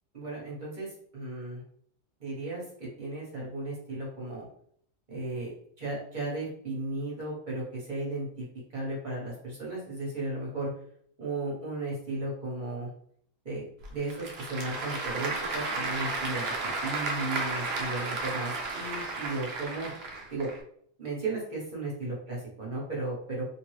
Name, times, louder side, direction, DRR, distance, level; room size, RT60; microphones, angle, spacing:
voice 1, 0.1-1.6 2.2-4.5 5.1-8.5 8.7-10.7 11.2-12.9 13.4-19.9 20.3-20.5 21.0-23.5, right 2 dB, 35° right, -4 dB, 1.1 m, -35 dB
Applause / Crowd, 13.8-20.6, right 3 dB, 80° right, 0.5 m, -33 dB
3.1 x 2.2 x 3.1 m, 0.64 s
omnidirectional pair, 1.7 m